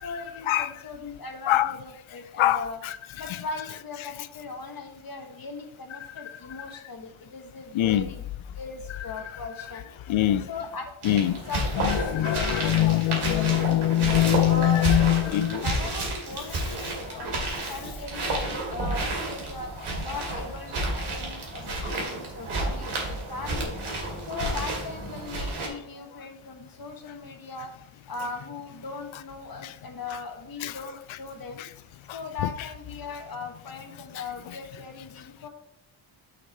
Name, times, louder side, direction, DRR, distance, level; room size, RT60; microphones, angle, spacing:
voice 1, 0.0-2.8 3.2-8.2 8.5-9.9 10.5-13.3 13.5-13.7 14.5-15.2 15.6-17.4 17.7-19.7 20.0-23.8 24.2-27.7 28.1-31.6 32.1-35.5, left 3 dB, 45° left, 1.4 m, -39 dB
voice 2, 2.4-3.0 3.3-3.4 7.7-8.1 10.1-10.5 11.0-11.4 11.7-15.7 18.3-18.4 29.6-29.7 30.6-30.8 31.6-31.7 32.1-32.5, left 13 dB, 70° left, 0.5 m, -23 dB
sound 1, 11.0-25.7, right 2 dB, 80° right, 2.6 m, -31 dB
6.1 x 5.9 x 4.3 m
wide cardioid pair, 105°, 49 cm